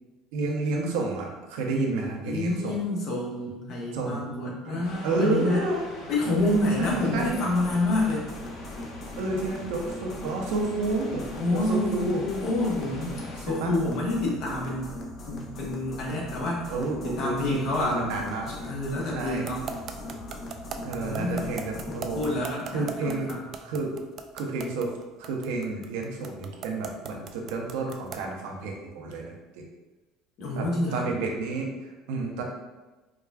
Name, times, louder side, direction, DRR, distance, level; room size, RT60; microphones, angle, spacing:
voice 1, 0.3-2.8 3.9-5.8 6.8-7.3 9.2-11.3 11.5-12.2 13.4-13.7 16.7-18.7 19.1-19.4 20.8-22.2 22.7-23.3 23.6-23.9 24.3-24.9 25.2-29.6 30.6-30.7 30.9-32.4, right 3 dB, 85° right, 1 dB, 0.6 m, -30 dB
voice 2, 2.3-5.6 6.1-8.3 11.3-14.9 15.2-16.7 17.0-18.1 18.5-19.6 21.0-23.4 30.4-31.1, left 1 dB, 55° left, -3 dB, 1.1 m, -28 dB
sound 1, 4.8-13.4, left 1 dB, 90° left, 0.9 m, -44 dB
sound 2, 6.3-22.4, left 2 dB, 40° left, 0.5 m, -40 dB
sound 3, 19.5-28.3, right 6 dB, 50° right, 0.3 m, -37 dB
4.7 x 2.3 x 2.3 m, 1.2 s
cardioid pair, 120°, 0 cm